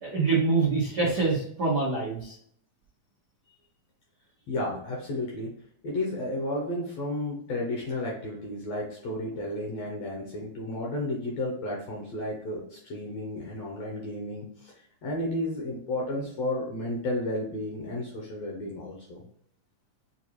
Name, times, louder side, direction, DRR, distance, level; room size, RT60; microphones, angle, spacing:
voice 1, 0.0-2.3, right 4 dB, 85° right, -6 dB, 0.9 m, -25 dB
voice 2, 4.5-5.5 5.8-14.4 15.0-19.2, left 1 dB, 65° left, -2 dB, 1.7 m, -32 dB
6.9 x 2.5 x 3.0 m, 0.65 s
omnidirectional pair, 4.0 m